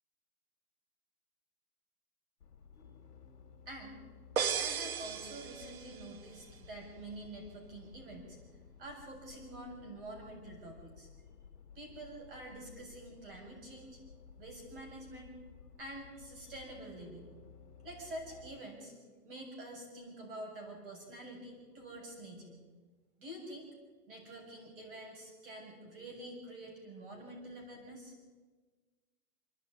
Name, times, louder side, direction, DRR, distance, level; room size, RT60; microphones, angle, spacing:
sound 1, 2.4-18.6, left 6 dB, 80° left, 2.4 m, -56 dB
voice 1, 3.7-4.0 4.6-8.4 8.8-11.1 11.7-14.0 14.4-15.4 15.8-17.3 17.8-18.9 19.2-22.6 23.2-23.7 24.1-28.1, right 1 dB, 35° right, 1 dB, 7.8 m, -47 dB
sound 2, 4.4-6.2, right 7 dB, 60° right, 1.3 m, -35 dB
29.5 x 10.5 x 9.8 m, 1.4 s
hypercardioid pair, 175°, 47 cm